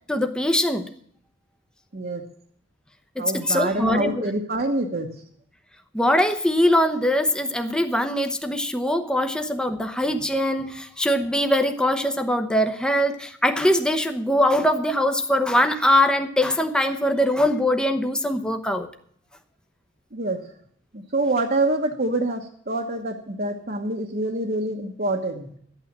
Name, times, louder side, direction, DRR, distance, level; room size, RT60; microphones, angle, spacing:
voice 1, 0.1-0.9 3.2-4.3 5.9-18.9, left 1 dB, 5° left, 7 dB, 0.9 m, -22 dB
voice 2, 3.2-5.1 20.1-20.5 20.9-25.5, right 2 dB, 50° right, 2 dB, 1.2 m, -26 dB
12.5 x 9.1 x 7.3 m, 0.64 s
head